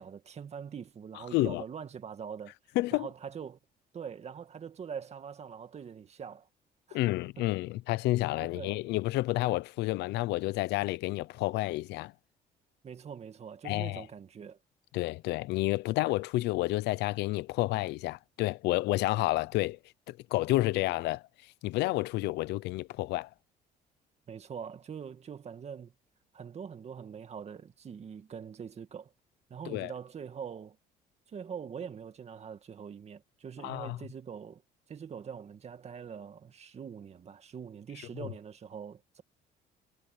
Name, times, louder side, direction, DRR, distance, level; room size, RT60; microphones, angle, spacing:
voice 1, 0.0-2.5 2.9-3.6 3.9-6.5 6.9-7.0 7.4-7.5 8.4-8.9 12.8-14.6 24.3-25.9 26.3-29.1 29.5-30.8 31.3-34.6 34.9-39.2, right 7 dB, 40° right, 2.1 m, -43 dB
voice 2, 1.3-1.6 2.8-3.1 6.9-12.1 13.6-14.1 14.9-19.8 20.1-21.2 21.6-23.3 29.7-29.9 33.6-34.0 38.2-38.3, left 18 dB, 85° left, 0.7 m, -30 dB
cardioid pair, 110°, 17 cm